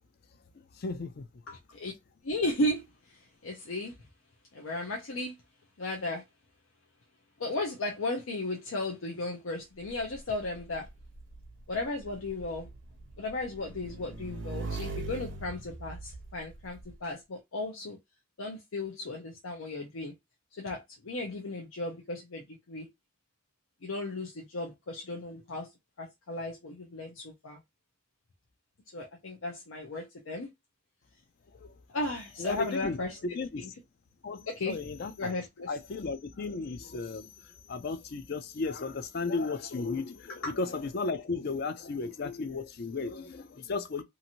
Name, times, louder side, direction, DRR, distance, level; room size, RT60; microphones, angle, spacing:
voice 1, 0.8-1.2 31.6-31.7 32.4-33.0 33.3-33.6 34.2-35.3 35.7-44.0, left 4 dB, 50° left, 0.4 m, -35 dB
voice 2, 1.5-1.9 2.2-4.0 4.5-5.4 5.8-6.2 7.4-10.9 11.7-12.7 13.2-18.0 18.4-20.1 20.6-22.9 23.8-25.7 26.0-27.6 28.9-30.5 31.9-33.7 34.5-34.8 35.2-35.7 40.4-40.5, left 2 dB, 85° left, 0.7 m, -35 dB
Motorcycle / Engine, 9.8-16.9, right 3 dB, 60° right, 0.6 m, -42 dB
2.8 x 2.5 x 2.8 m
head